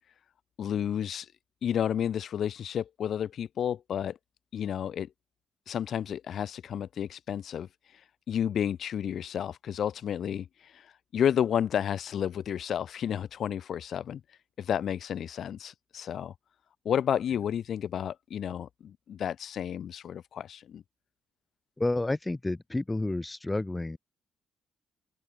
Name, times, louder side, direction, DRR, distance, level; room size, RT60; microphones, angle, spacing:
voice 1, 0.6-1.3 1.6-4.2 4.5-5.1 5.7-8.0 8.3-14.2 14.6-16.3 16.9-20.8, left 9 dB, 55° left, 5.1 m, -31 dB
voice 2, 21.8-24.0, left 2 dB, 10° left, 3.3 m, -30 dB
open air
cardioid pair, 155°, 0 cm